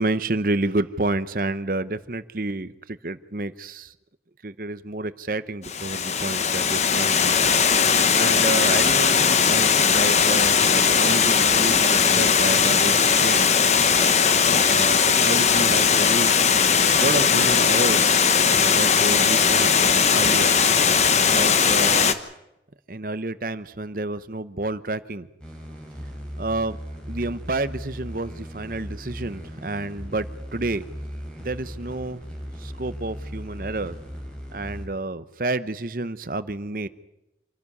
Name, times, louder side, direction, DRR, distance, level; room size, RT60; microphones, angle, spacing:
voice 1, 0.0-3.9 4.4-13.5 14.6-16.5 17.0-20.5 21.0-22.2 22.9-25.3 26.4-26.8 27.1-30.8 31.4-32.2 32.6-33.9 34.5-36.9, right 2 dB, 50° right, 14 dB, 0.9 m, -30 dB
Water, 5.6-22.1, left 6 dB, 40° left, 1.1 m, -19 dB
sound 1, 25.4-34.8, equal, 5° left, 5.4 m, -37 dB
27.0 x 12.0 x 9.8 m, 0.90 s
head